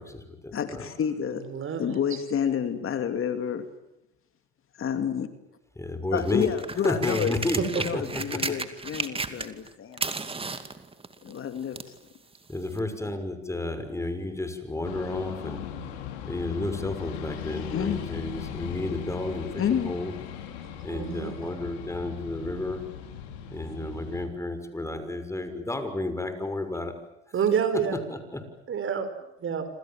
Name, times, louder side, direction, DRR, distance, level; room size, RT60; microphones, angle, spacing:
voice 1, 0.0-0.9 5.8-6.5 6.8-8.6 12.5-15.6 16.2-20.1 20.8-22.8 23.5-26.9 27.7-28.4, left 2 dB, 10° left, 8 dB, 6.3 m, -32 dB
voice 2, 0.5-1.5 1.8-3.6 4.8-5.3 6.1-7.3 7.7-10.2 11.2-11.9 17.7-18.0 19.6-19.9, left 8 dB, 40° left, 8 dB, 2.8 m, -29 dB
voice 3, 1.5-2.0 20.9-21.3 27.3-28.0 28.7-29.1 29.4-29.7, right 7 dB, 40° right, 11 dB, 5.2 m, -27 dB
sound 1, 6.1-9.7 9.9-12.0 12.8-12.9, right 3 dB, 15° right, 2.5 m, -33 dB
sound 2, 14.8-24.2, left 9 dB, 85° left, 5.3 m, -39 dB
27.5 x 26.5 x 7.5 m, 0.89 s
supercardioid pair, 90°, 32 cm